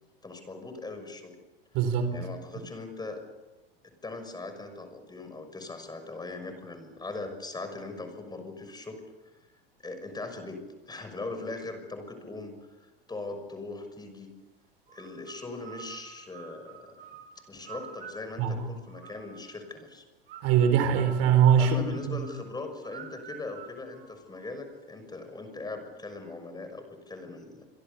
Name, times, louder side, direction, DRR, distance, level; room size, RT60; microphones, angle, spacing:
voice 1, 0.2-1.3 2.1-3.2 3.8-9.0 9.8-10.6 10.9-14.3 14.9-17.0 17.5-20.0 21.6-27.6, left 3 dB, 15° left, 7 dB, 6.1 m, -40 dB
voice 2, 1.7-2.3 18.4-18.6 20.4-22.2, right 8 dB, 50° right, 9 dB, 4.2 m, -23 dB
sound 1, 14.9-19.6 20.3-24.7, right 7 dB, 70° right, 6.1 m, -49 dB
27.0 x 24.5 x 7.0 m, 1.1 s
figure-of-eight pair, 85°, 30 cm